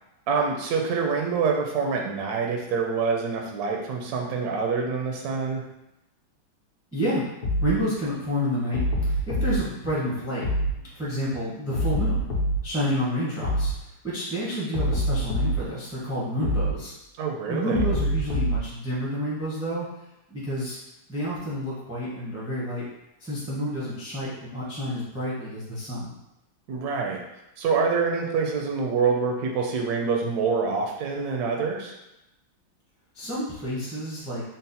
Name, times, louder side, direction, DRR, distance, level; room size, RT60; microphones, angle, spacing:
voice 1, 0.3-5.6 17.2-17.9 26.7-27.2 27.6-31.9, right 5 dB, 75° right, 1 dB, 0.9 m, -26 dB
voice 2, 6.9-7.2 7.6-8.8 9.1-10.4 10.9-12.2 12.6-13.7 14.0-16.9 17.5-19.9 20.3-20.8 21.1-22.9 23.2-26.1 33.1-34.4, equal, 5° right, -7 dB, 0.5 m, -29 dB
sound 1, 7.4-7.8 8.7-9.6 10.4-10.8 11.7-12.6 13.4-13.8 14.7-15.6 16.4-16.8 17.7-18.6, equal, 60° left, 1.2 m, -25 dB
3.9 x 2.1 x 4.0 m, 0.90 s
omnidirectional pair, 2.1 m